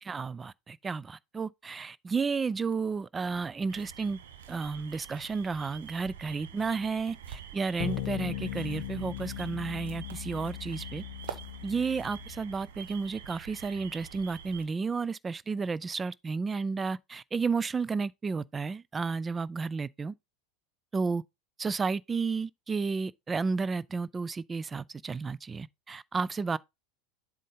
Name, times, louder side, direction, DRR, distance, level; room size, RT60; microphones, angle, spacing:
voice 1, 0.0-4.2 4.5-11.4 11.6-20.1 20.9-21.2 21.6-26.6, right 4 dB, 20° right, 0.4 m, -32 dB
sound 1, 3.7-14.7, right 8 dB, 65° right, 0.9 m, -47 dB
sound 2, 7.8-12.6, left 14 dB, 55° left, 0.5 m, -38 dB
7.5 x 3.4 x 5.2 m
figure-of-eight pair, 80°, 0 cm